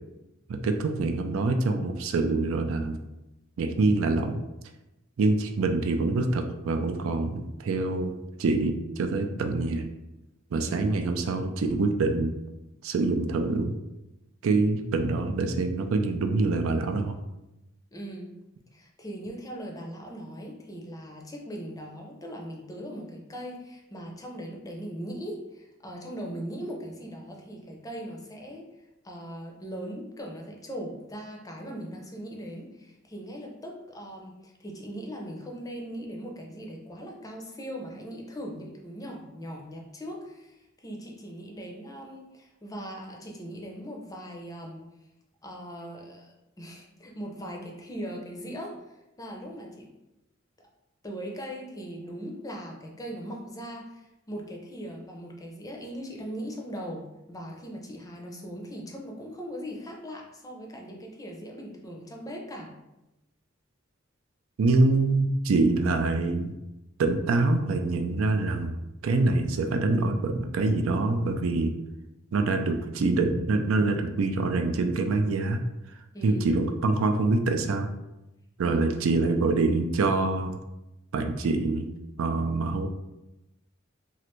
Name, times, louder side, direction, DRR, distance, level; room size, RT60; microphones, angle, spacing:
voice 1, 0.5-3.0 3.6-4.4 5.2-9.9 10.5-12.3 12.8-13.7 14.4-17.2 64.6-66.5 67.0-68.8 69.0-71.7 72.3-75.6 76.2-77.9 78.6-80.6 81.1-81.9 82.2-82.9, right 3 dB, 85° right, 6 dB, 0.4 m, -25 dB
voice 2, 10.5-10.9 17.9-18.3 18.7-28.7 29.0-44.9 45.4-49.9 51.0-62.7 76.1-76.5 78.6-78.8, equal, 15° left, 0 dB, 0.5 m, -39 dB
3.1 x 2.5 x 3.0 m, 0.95 s
head